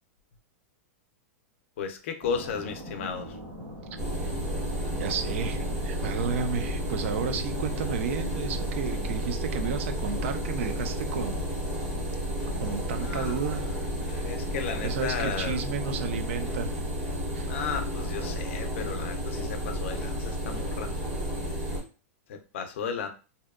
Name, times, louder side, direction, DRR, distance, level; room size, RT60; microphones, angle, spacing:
voice 1, 1.8-3.4 12.9-13.4 14.0-15.6 17.4-20.9 22.3-23.1, left 6 dB, 60° left, 7 dB, 0.4 m, -34 dB
sound 1, 2.2-20.5, left 1 dB, 25° right, 1.1 m, -46 dB
sound 2, 4.0-21.8, equal, 5° right, 0.8 m, -32 dB
voice 2, 5.0-11.4 12.6-13.6 14.8-16.8 17.3-17.6, right 6 dB, 65° right, 9 dB, 0.4 m, -32 dB
2.7 x 2.1 x 2.3 m, 0.34 s
supercardioid pair, 170°, 7 cm